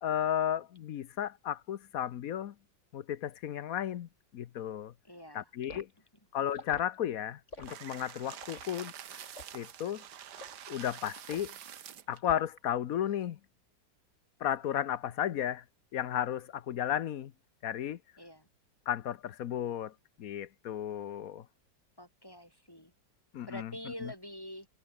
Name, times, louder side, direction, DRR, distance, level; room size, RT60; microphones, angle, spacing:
voice 1, 0.0-2.5 2.9-4.9 5.3-5.9 6.3-8.9 9.5-10.0 10.7-11.5 12.1-13.4 14.4-15.6 15.9-17.3 17.6-18.0 18.9-19.9 20.2-21.4 23.3-23.7 24.0-24.1, left 10 dB, 60° left, 1.1 m, -34 dB
voice 2, 5.0-5.5 18.2-18.5 22.0-22.9 23.5-24.7, equal, 10° left, 4.0 m, -45 dB
Liquid, 5.7-5.9 6.5-6.9 7.5-7.8 8.4-8.7 9.3-9.6 10.4-10.6 11.3-11.6 12.2-12.7 13.0-13.3, left 2 dB, 40° left, 6.1 m, -48 dB
sound 1, 7.6-12.2, right 9 dB, 65° right, 1.7 m, -47 dB
omnidirectional pair, 2.0 m